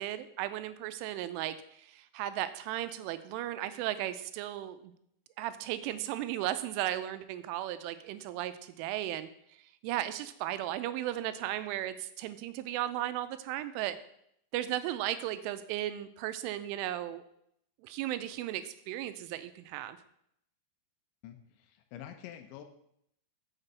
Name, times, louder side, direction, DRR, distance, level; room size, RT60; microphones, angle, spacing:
voice 1, 0.0-4.9 5.4-14.0 14.5-17.2 17.8-20.0, right 13 dB, 85° right, 11 dB, 3.0 m, -36 dB
voice 2, 21.2-22.6, left 10 dB, 80° left, 7 dB, 3.0 m, -47 dB
7.3 x 6.8 x 6.6 m, 0.73 s
omnidirectional pair, 5.7 m